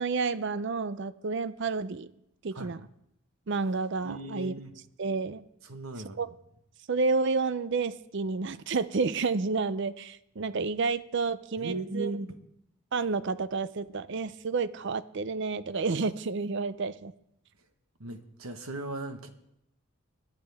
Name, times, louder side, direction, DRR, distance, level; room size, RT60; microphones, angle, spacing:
voice 1, 0.0-2.1 2.4-2.8 3.5-4.5 5.0-5.4 6.2-6.3 6.9-12.2 12.9-17.1, right 4 dB, 55° right, 15 dB, 0.5 m, -30 dB
voice 2, 4.0-4.8 5.6-6.2 11.6-12.3 18.0-19.3, right 2 dB, 85° right, 7 dB, 1.3 m, -37 dB
21.0 x 10.5 x 3.5 m, 0.80 s
head